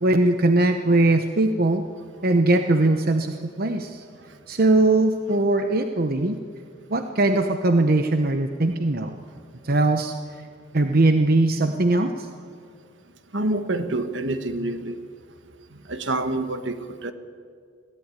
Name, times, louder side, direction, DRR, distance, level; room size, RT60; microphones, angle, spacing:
voice 1, 0.0-1.8 2.2-4.0 4.5-6.4 6.9-9.1 9.6-10.1 10.7-12.1, right 2 dB, 50° right, 7 dB, 0.9 m, -20 dB
voice 2, 13.3-15.0 15.9-17.1, right 2 dB, 65° right, 9 dB, 1.3 m, -27 dB
21.5 x 15.0 x 9.8 m, 2.1 s
head